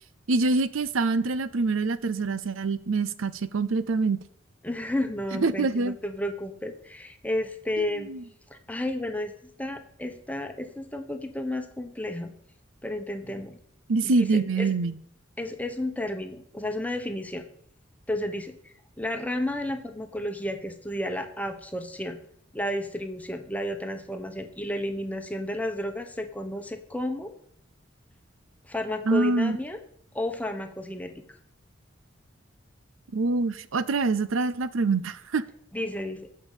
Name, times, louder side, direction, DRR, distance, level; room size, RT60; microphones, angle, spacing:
voice 1, 0.3-4.2 5.3-6.0 7.8-8.2 13.9-15.0 29.1-29.6 33.1-35.4, right 3 dB, 85° right, 16 dB, 0.6 m, -25 dB
voice 2, 4.6-8.1 8.5-9.3 9.6-12.3 12.8-13.6 14.0-14.7 15.4-17.4 18.1-22.2 22.5-27.3 28.6-29.8 30.1-31.4 35.7-36.3, left 1 dB, 5° left, 6 dB, 1.1 m, -32 dB
14.0 x 5.3 x 8.3 m, 0.67 s
head